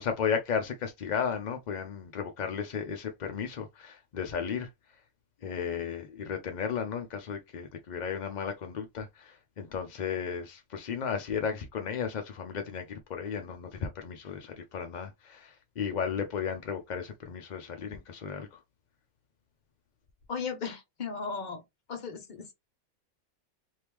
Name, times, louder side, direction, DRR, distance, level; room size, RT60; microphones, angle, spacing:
voice 1, 0.0-4.7 5.4-18.6, left 7 dB, 65° left, 0.4 m, -34 dB
voice 2, 20.3-21.6 21.9-22.5, left 5 dB, 40° left, 0.7 m, -36 dB
3.0 x 2.7 x 3.4 m
omnidirectional pair, 1.5 m